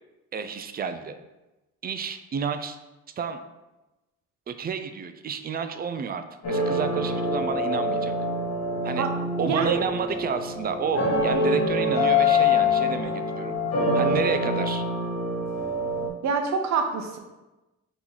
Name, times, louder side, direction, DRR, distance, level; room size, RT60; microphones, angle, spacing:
voice 1, 0.3-1.2 1.8-2.8 3.2-3.4 4.5-8.1 8.8-9.1 9.4-13.5 13.9-14.8, right 6 dB, 30° right, 9 dB, 0.4 m, -31 dB
sound 1, 6.4-16.1, left 2 dB, 60° left, 1.0 m, -25 dB
voice 2, 9.4-9.9 16.2-17.2, right 5 dB, 65° right, 4 dB, 0.7 m, -26 dB
3.9 x 3.0 x 3.8 m, 1.0 s
cardioid pair, 90°, 30 cm